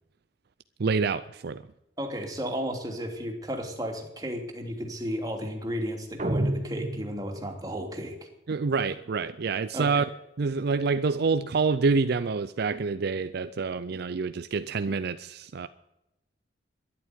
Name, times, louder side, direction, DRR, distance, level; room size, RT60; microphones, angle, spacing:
voice 1, 0.8-1.6 8.5-10.1 10.4-15.7, right 4 dB, 60° right, 0.5 m, -27 dB
voice 2, 2.0-8.1 9.7-10.0, equal, 20° right, 3.0 m, -33 dB
sound 1, 6.2-7.7, right 1 dB, 40° right, 1.3 m, -30 dB
12.5 x 11.0 x 9.4 m
head